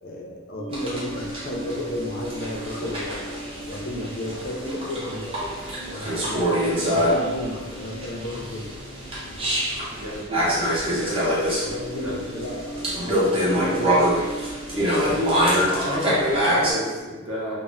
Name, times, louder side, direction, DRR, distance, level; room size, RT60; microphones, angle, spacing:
voice 1, 0.0-3.2 3.7-8.7 11.6-14.1, left 1 dB, 50° left, -1 dB, 0.4 m, -33 dB
sound 1, 0.5-9.9 10.7-11.0 11.3-17.0, right 2 dB, 85° right, 1.0 m, -39 dB
sound 2, 0.7-16.7, equal, 25° right, 0.6 m, -25 dB
voice 2, 9.9-11.2 12.0-12.2 15.7-17.6, equal, 65° right, -5 dB, 0.7 m, -31 dB
2.1 x 2.0 x 3.6 m, 1.3 s
head